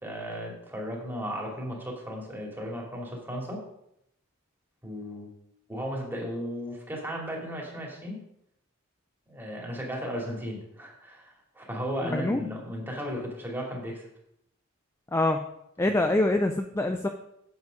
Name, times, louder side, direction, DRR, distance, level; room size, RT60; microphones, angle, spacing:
voice 1, 0.0-3.6 4.8-5.3 5.7-8.2 9.3-14.1 15.9-16.0, equal, 10° right, -2 dB, 2.5 m, -35 dB
voice 2, 12.0-12.5 15.1-15.4 15.8-17.1, left 2 dB, 10° left, 5 dB, 0.4 m, -25 dB
8.0 x 7.8 x 5.1 m, 0.77 s
head